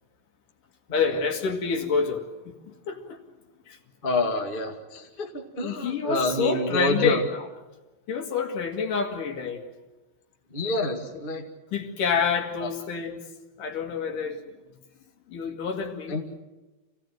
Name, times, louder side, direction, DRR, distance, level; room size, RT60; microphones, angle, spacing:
voice 1, 0.9-3.2 3.7-3.8 5.6-7.5 8.1-9.6 11.7-13.3 13.6-14.4 15.3-16.2, left 5 dB, 60° left, 4 dB, 3.2 m, -28 dB
voice 2, 4.0-7.2 10.5-11.4 12.6-12.7 16.1-16.2, left 2 dB, 30° left, 2 dB, 1.0 m, -28 dB
27.5 x 17.0 x 9.1 m, 1.1 s
omnidirectional pair, 4.7 m